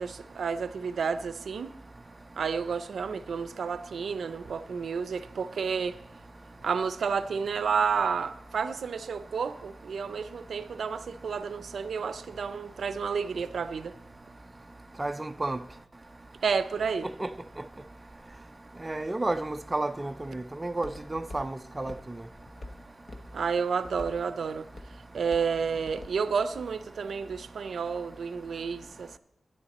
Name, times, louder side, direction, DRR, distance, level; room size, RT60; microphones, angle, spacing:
voice 1, 0.0-1.7 2.4-6.0 6.6-13.9 16.4-17.1 23.3-24.7 25.1-29.2, right 6 dB, 90° right, 0.4 m, -31 dB
voice 2, 15.0-15.6 17.2-17.3 18.8-21.9, right 2 dB, 20° right, 0.4 m, -31 dB
Walk footsteps, 19.4-27.4, left 1 dB, 35° left, 0.9 m, -49 dB
12.0 x 10.0 x 4.1 m
wide cardioid pair, 170°, 0 cm